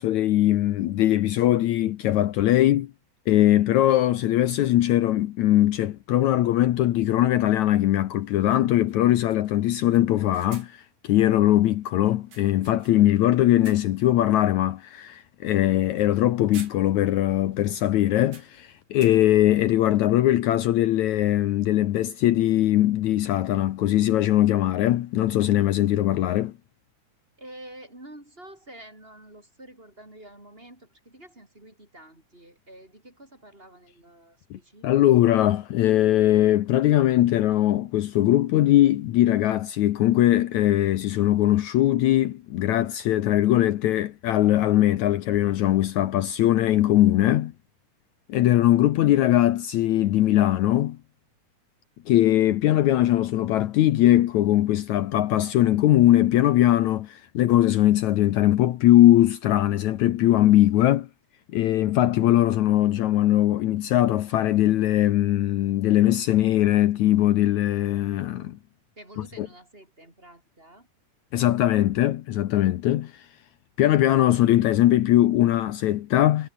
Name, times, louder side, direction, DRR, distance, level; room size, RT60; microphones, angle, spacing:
voice 1, 0.0-2.9 3.3-26.5 34.5-47.5 48.3-51.0 52.1-61.1 61.5-68.6 69.4-69.5 71.3-73.3 73.8-76.5, left 13 dB, 70° left, 2.2 m, -21 dB
sound 1, 5.7-5.8 7.9-8.0 8.3-8.4 8.9-9.0 9.3-11.0 12.0-13.2 13.5-14.1 14.6-14.8 16.0-16.2 16.5-17.3 17.5-17.6 18.2-19.5, right 5 dB, 85° right, 6.9 m, -50 dB
voice 2, 27.4-35.3 69.0-70.9, right 1 dB, 15° right, 5.5 m, -48 dB
omnidirectional pair, 3.6 m